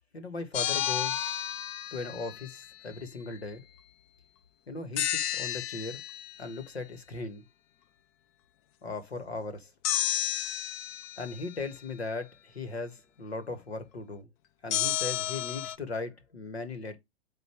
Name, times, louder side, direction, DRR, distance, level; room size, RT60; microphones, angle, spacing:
voice 1, 0.1-1.4 1.9-3.6 4.7-6.0 6.4-7.4 8.8-9.7 11.2-14.3 14.6-17.0, left 3 dB, 85° left, 1.8 m, -38 dB
sound 1, 0.5-2.7 5.0-6.5 9.8-11.5 14.7-15.8, left 11 dB, 25° left, 0.4 m, -32 dB
8.3 x 3.0 x 4.6 m
hypercardioid pair, 115°, 31 cm